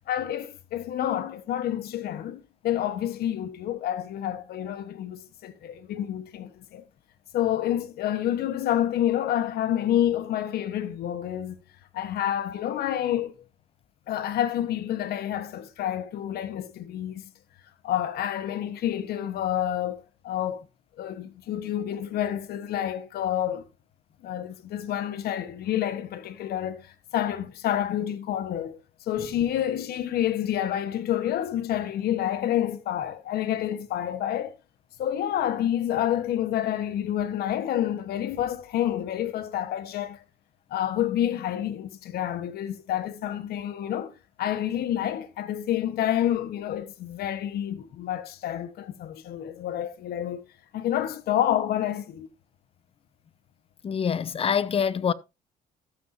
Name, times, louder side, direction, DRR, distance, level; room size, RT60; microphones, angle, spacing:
voice 1, 0.1-6.8 7.3-11.6 11.9-13.3 14.1-17.2 17.8-20.6 21.0-23.6 24.2-28.8 29.1-34.5 35.0-40.2 40.7-44.1 44.4-50.4 50.7-52.3, left 11 dB, 70° left, 1.3 m, -28 dB
voice 2, 53.8-55.1, left 7 dB, 35° left, 0.7 m, -25 dB
13.0 x 8.4 x 2.7 m
cardioid pair, 110°, 17 cm